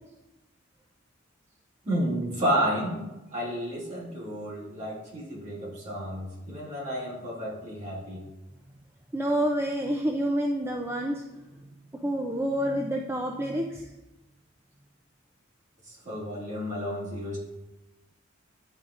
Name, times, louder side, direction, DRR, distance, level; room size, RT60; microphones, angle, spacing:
voice 1, 1.8-3.0 3.3-8.2 15.8-17.4, equal, 35° right, -7 dB, 2.2 m, -31 dB
voice 2, 9.1-11.2 12.0-13.9, equal, 10° right, 1 dB, 0.3 m, -28 dB
10.5 x 4.0 x 2.5 m, 1.0 s
head